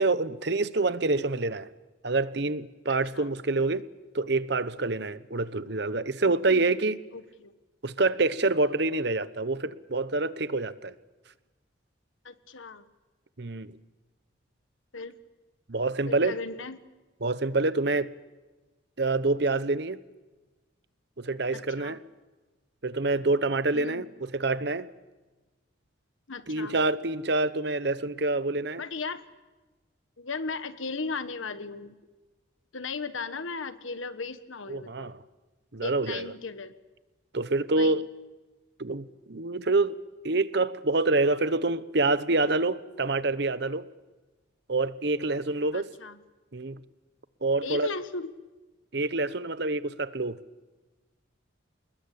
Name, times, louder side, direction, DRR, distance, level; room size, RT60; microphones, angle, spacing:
voice 1, 0.0-1.7 2.0-3.8 4.1-7.0 7.8-10.9 13.4-13.7 15.7-16.4 17.2-18.1 19.0-20.0 21.2-22.0 22.8-24.9 26.5-28.8 34.7-35.1 35.7-36.3 37.3-38.0 38.8-40.0 40.2-43.9 44.7-45.9 46.5-46.8 47.4-47.9 48.9-50.4, right 3 dB, 55° right, 15 dB, 1.0 m, -27 dB
voice 2, 2.9-3.3 7.1-7.5 12.2-12.9 14.9-15.1 16.1-16.8 21.5-22.0 23.7-24.0 26.3-26.8 28.8-29.2 30.2-32.0 32.7-35.1 35.8-36.7 37.7-38.0 45.7-46.2 47.6-48.3, left 4 dB, 80° left, 11 dB, 1.4 m, -36 dB
28.0 x 21.0 x 8.4 m, 1.2 s
head